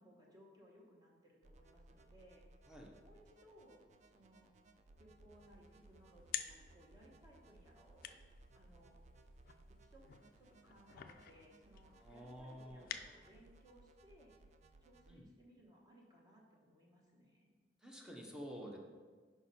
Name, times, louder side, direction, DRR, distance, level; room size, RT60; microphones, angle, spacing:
voice 1, 0.0-2.4 3.0-4.5 5.0-8.2 8.5-9.0 9.8-14.3 14.8-17.5, equal, 20° right, -3 dB, 1.2 m, -64 dB
sound 1, 1.4-15.1, right 2 dB, 40° right, 0.4 m, -64 dB
sound 2, 5.4-13.6, left 10 dB, 50° left, 0.3 m, -51 dB
voice 2, 12.0-12.9 15.1-15.3 17.8-18.8, equal, 5° right, 0 dB, 0.8 m, -50 dB
6.0 x 5.1 x 4.2 m, 1.5 s
head